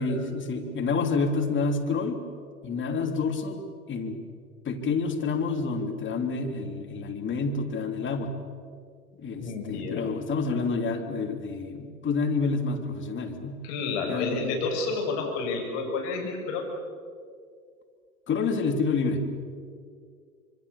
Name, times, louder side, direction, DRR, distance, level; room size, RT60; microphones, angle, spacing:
voice 1, 0.0-2.2 2.6-3.6 3.9-4.2 4.6-8.3 9.2-13.6 14.1-14.5 18.3-19.2, left 4 dB, 25° left, 5 dB, 3.0 m, -28 dB
voice 2, 9.4-10.0 13.6-16.7, left 4 dB, 55° left, 1 dB, 7.0 m, -30 dB
26.5 x 24.5 x 7.1 m, 2.2 s
hypercardioid pair, 100°, 44 cm